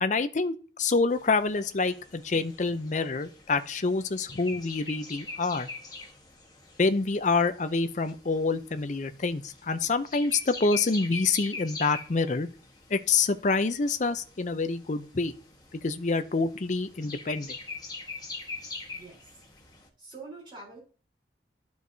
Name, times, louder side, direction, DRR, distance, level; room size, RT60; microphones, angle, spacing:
voice 1, 0.0-5.7 6.8-12.5 12.9-15.3 15.7-17.5, left 4 dB, 40° left, 11 dB, 0.5 m, -27 dB
sound 1, 1.1-19.9, left 3 dB, 20° left, 1.2 m, -44 dB
voice 2, 18.9-19.4 20.0-20.8, right 3 dB, 25° right, -3 dB, 3.7 m, -45 dB
12.5 x 4.6 x 2.7 m, 0.38 s
head